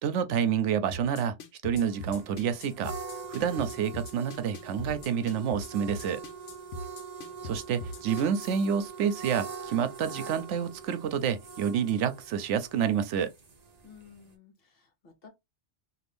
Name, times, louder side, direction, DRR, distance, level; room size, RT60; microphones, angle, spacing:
voice 1, 0.0-1.3 1.6-2.9 3.3-6.2 7.4-13.3, right 8 dB, 90° right, 0.9 m, -28 dB
sound 1, 0.9-8.7, left 1 dB, 85° left, 1.0 m, -40 dB
sound 2, 1.8-14.3, right 5 dB, 40° right, 0.7 m, -43 dB
voice 2, 13.8-15.3, left 6 dB, 55° left, 1.1 m, -54 dB
2.6 x 2.5 x 3.4 m
omnidirectional pair, 1.2 m